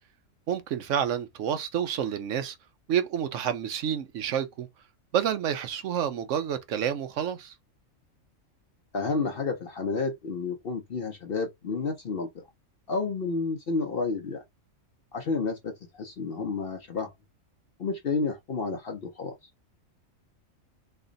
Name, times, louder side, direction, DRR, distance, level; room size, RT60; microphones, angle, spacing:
voice 1, 0.5-2.6 2.9-4.7 5.1-7.5, right 9 dB, 70° right, 1.0 m, -29 dB
voice 2, 8.9-12.4 12.9-14.4 15.1-17.1 17.8-19.5, left 4 dB, 55° left, 0.8 m, -30 dB
3.3 x 2.3 x 3.9 m
omnidirectional pair, 1.4 m